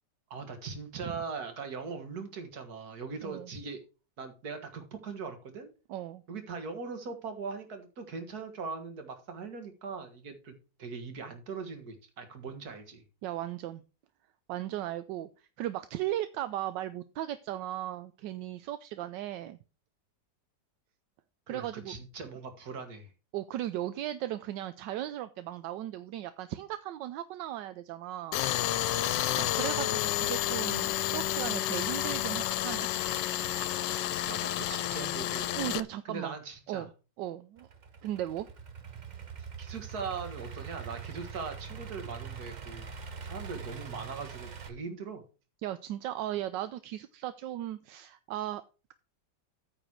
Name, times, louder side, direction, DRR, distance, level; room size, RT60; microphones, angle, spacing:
voice 1, 0.3-3.8 4.2-5.7 6.3-13.0 21.5-23.1 34.1-35.5 36.1-36.9 39.4-42.9 43.2-45.2, right 5 dB, 60° right, 7 dB, 2.0 m, -40 dB
voice 2, 5.9-6.2 13.2-13.8 14.5-15.3 15.6-19.6 21.5-21.9 23.3-28.5 29.4-32.9 34.7-34.8 35.6-36.4 36.7-36.9 37.2-37.7 38.0-38.5 45.6-48.6, right 13 dB, 80° right, 12 dB, 1.2 m, -36 dB
Tools, 28.3-35.8, left 13 dB, 90° left, 1.3 m, -30 dB
Idling / Accelerating revving vroom, 37.6-44.7, right 6 dB, 40° right, 0.6 m, -43 dB
9.0 x 4.4 x 6.3 m, 0.33 s
omnidirectional pair, 1.9 m